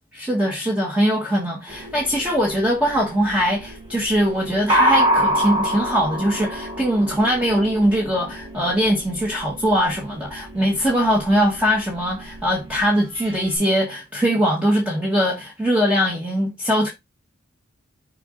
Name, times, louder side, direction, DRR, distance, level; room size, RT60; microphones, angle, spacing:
voice 1, 0.1-16.9, equal, 5° right, 1.6 m, -21 dB
sound 1, 1.7-13.6, equal, 30° right, 3.6 m, -27 dB
6.5 x 3.9 x 3.9 m
head